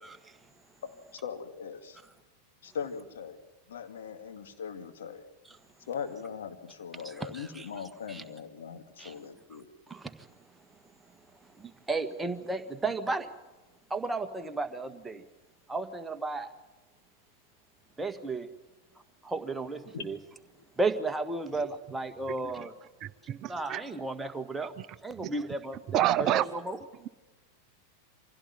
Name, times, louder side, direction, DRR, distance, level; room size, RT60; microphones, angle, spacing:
voice 1, 0.8-2.0 2.6-3.4 3.7-5.2 5.9-9.7 19.9-20.1, left 7 dB, 60° left, 6 dB, 2.3 m, -40 dB
voice 2, 7.0-7.6 8.1-8.2 9.0-9.1 9.9-10.3 11.6-13.3 13.9-15.2 15.7-16.5 18.0-18.5 19.2-20.2 20.8-22.7 23.5-24.7 25.0-26.8, right 3 dB, 10° right, 7 dB, 1.7 m, -34 dB
voice 3, 23.0-23.8 25.9-26.4, right 12 dB, 35° right, 13 dB, 0.8 m, -27 dB
25.5 x 16.5 x 9.5 m, 1.1 s
figure-of-eight pair, 90°, 0 cm